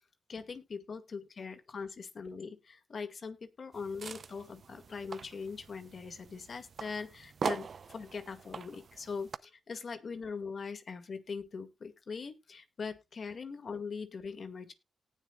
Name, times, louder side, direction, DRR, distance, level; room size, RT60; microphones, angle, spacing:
voice 1, 0.3-14.7, left 5 dB, 55° left, 9 dB, 2.0 m, -41 dB
sound 1, 3.7-9.4, right 5 dB, 55° right, 0.6 m, -42 dB
18.5 x 6.8 x 2.4 m, 0.23 s
cardioid pair, 80°, 0 cm